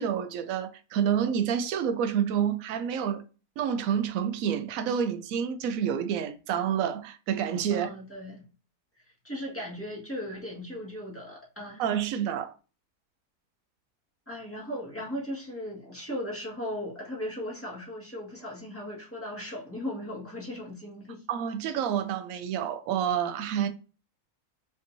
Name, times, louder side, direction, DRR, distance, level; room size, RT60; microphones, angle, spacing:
voice 1, 0.0-3.2 3.6-7.9 11.8-12.5 21.3-23.7, right 8 dB, 70° right, 0.9 m, -28 dB
voice 2, 7.7-8.4 9.2-11.9 14.3-21.2, left 1 dB, 10° left, 1.6 m, -37 dB
5.2 x 3.6 x 2.7 m
omnidirectional pair, 1.7 m